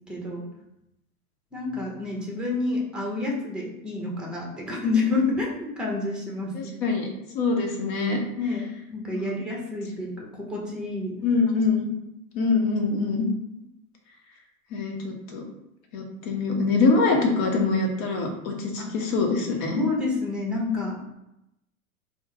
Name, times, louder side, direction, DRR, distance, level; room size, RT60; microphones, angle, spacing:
voice 1, 0.1-0.4 1.5-6.7 8.4-8.6 8.9-11.2 18.8-18.9 19.7-21.0, left 3 dB, ahead, -1 dB, 0.7 m, -29 dB
voice 2, 6.5-7.1 7.3-8.2 9.1-9.4 11.2-11.9 12.3-13.3 14.7-15.4 15.9-19.8, left 4 dB, 45° left, 1 dB, 1.0 m, -24 dB
3.6 x 2.1 x 3.8 m, 0.85 s
hypercardioid pair, 100°, 43 cm